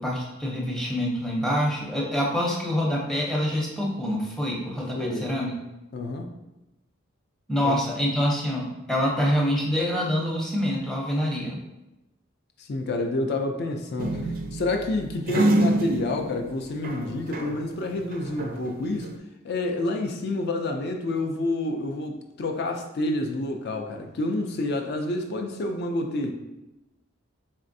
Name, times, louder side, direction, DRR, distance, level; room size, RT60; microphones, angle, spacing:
voice 1, 0.0-5.5 7.5-11.6, equal, ahead, -3 dB, 0.6 m, -26 dB
voice 2, 4.9-5.3 5.9-6.3 7.6-7.8 12.6-19.1 19.4-26.3, left 2 dB, 50° left, 4 dB, 0.4 m, -28 dB
sound 1, 14.0-17.7 18.0-19.2, right 1 dB, 45° right, 0.4 m, -27 dB
4.3 x 3.2 x 2.6 m, 0.97 s
head